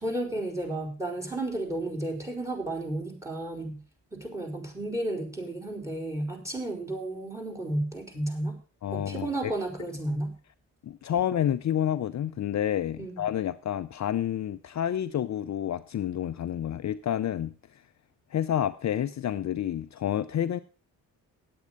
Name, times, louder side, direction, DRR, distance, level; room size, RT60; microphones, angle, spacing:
voice 1, 0.0-3.8 4.1-8.6 8.9-10.3 13.0-13.3, right 1 dB, 10° right, 5 dB, 4.9 m, -32 dB
voice 2, 8.8-9.5 10.8-17.5 18.3-20.6, left 10 dB, 50° left, 10 dB, 0.7 m, -29 dB
9.6 x 8.4 x 6.6 m, 0.37 s
supercardioid pair, 60°, 36 cm